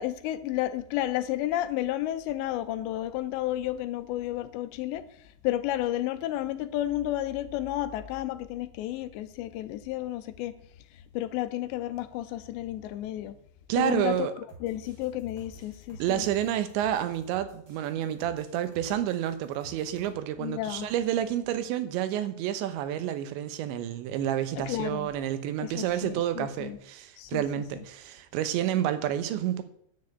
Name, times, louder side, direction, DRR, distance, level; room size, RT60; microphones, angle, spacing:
voice 1, 0.0-5.1 5.4-10.5 11.1-13.4 13.8-14.3 14.6-16.3 20.4-20.9 24.6-25.1 25.6-26.8 27.2-27.4, left 13 dB, 85° left, 2.9 m, -31 dB
voice 2, 13.7-14.3 16.0-29.6, right 11 dB, 85° right, 3.3 m, -29 dB
sound 1, 14.5-20.1, right 4 dB, 30° right, 3.2 m, -52 dB
10.0 x 6.8 x 8.4 m
omnidirectional pair, 5.1 m